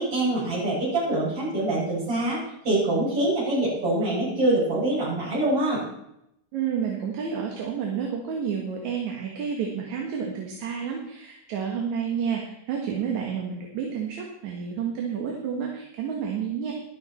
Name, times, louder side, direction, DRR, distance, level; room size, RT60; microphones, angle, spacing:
voice 1, 0.0-2.4 2.6-5.8, right 2 dB, 45° right, -7 dB, 7.3 m, -24 dB
voice 2, 6.5-16.7, right 7 dB, 70° right, 0 dB, 2.8 m, -30 dB
13.0 x 11.5 x 4.3 m, 0.80 s
omnidirectional pair, 3.5 m